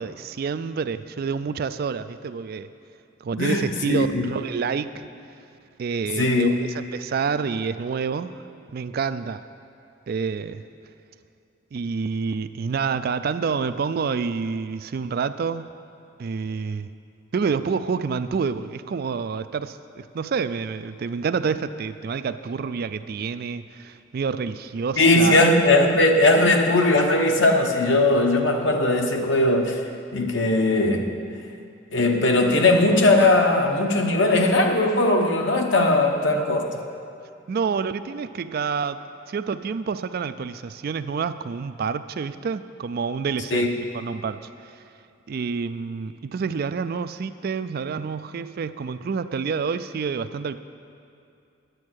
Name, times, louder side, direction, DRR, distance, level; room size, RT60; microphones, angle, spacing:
voice 1, 0.0-2.7 3.2-5.0 5.8-8.4 8.7-9.4 10.1-10.6 11.7-15.7 16.2-16.9 17.3-25.4 37.5-39.0 39.3-43.7 43.9-44.8 45.3-50.6, right 5 dB, 50° right, 11 dB, 0.3 m, -28 dB
voice 2, 3.4-4.2 6.2-6.5 25.0-29.8 30.1-31.1 31.9-36.8 43.5-43.7, left 2 dB, 60° left, 3 dB, 1.1 m, -19 dB
10.5 x 8.5 x 6.3 m, 2.6 s
head